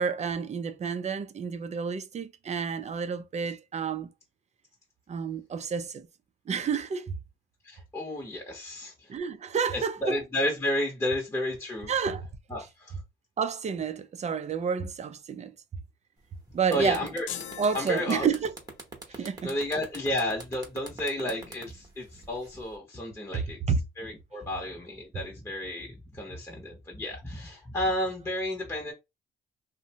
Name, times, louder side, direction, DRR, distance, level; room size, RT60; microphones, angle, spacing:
voice 1, 0.0-4.1 5.1-6.1 6.5-7.1 9.1-10.2 11.9-12.3 13.4-15.5 16.5-17.1 17.6-18.5 19.2-19.5 23.3-23.8, right 6 dB, 35° right, 0.4 m, -30 dB
voice 2, 7.6-9.1 9.7-11.9 12.5-13.0 16.7-17.3 17.7-18.3 19.1-23.6 24.0-28.9, left 1 dB, 15° left, 0.8 m, -32 dB
sound 1, 16.2-16.4 16.7-22.8, right 2 dB, 20° right, 0.9 m, -44 dB
sound 2, 17.3-18.8, left 9 dB, 75° left, 0.4 m, -41 dB
2.6 x 2.1 x 2.8 m
cardioid pair, 90°, 20 cm